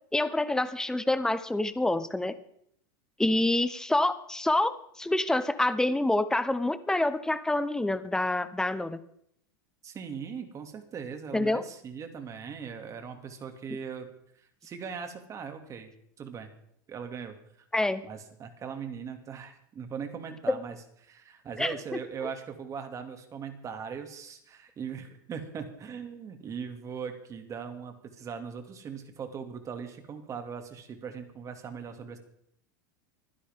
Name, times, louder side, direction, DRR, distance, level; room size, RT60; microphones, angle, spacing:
voice 1, 0.1-2.3 3.2-4.7 5.0-9.0 11.3-11.6 17.7-18.0 20.5-20.6 21.6-22.0, left 2 dB, 5° left, 13 dB, 1.0 m, -27 dB
voice 2, 9.8-14.1 14.4-15.9 16.2-16.5 16.9-17.4 18.0-20.8 21.0-32.2, right 6 dB, 30° right, 6 dB, 2.5 m, -40 dB
25.5 x 10.5 x 3.7 m, 0.69 s
supercardioid pair, 115°, 11 cm